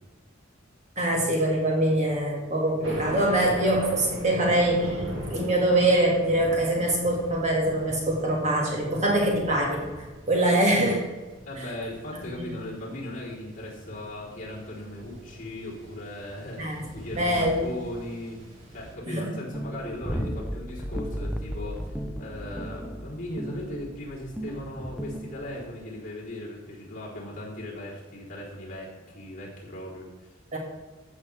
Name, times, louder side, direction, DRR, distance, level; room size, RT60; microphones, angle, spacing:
voice 1, 1.0-5.0 5.3-9.9 10.3-11.0 12.3-12.5 16.6-16.8 17.1-17.8 19.1-19.3 30.5-30.6, right 1 dB, 35° right, -1 dB, 2.1 m, -24 dB
Thunder, 2.8-18.9, equal, 75° right, 2.3 m, -41 dB
voice 2, 11.4-18.4 18.7-30.3, left 1 dB, 40° left, -6 dB, 3.9 m, -38 dB
sound 1, 19.5-25.7, equal, 5° right, 0.7 m, -34 dB
14.5 x 7.4 x 3.5 m, 1.3 s
head